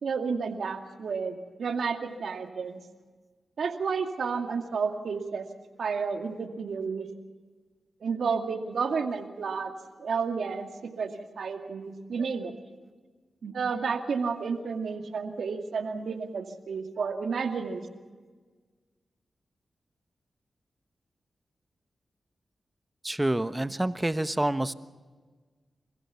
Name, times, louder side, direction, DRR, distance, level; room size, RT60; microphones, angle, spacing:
voice 1, 0.0-2.8 3.6-5.5 5.8-7.1 8.0-9.7 10.0-10.7 11.0-12.5 13.4-17.8, right 5 dB, 75° right, 5 dB, 2.2 m, -31 dB
voice 2, 23.0-24.7, right 1 dB, 20° right, 11 dB, 1.2 m, -27 dB
29.0 x 15.5 x 7.1 m, 1.4 s
supercardioid pair, 40°, 0 cm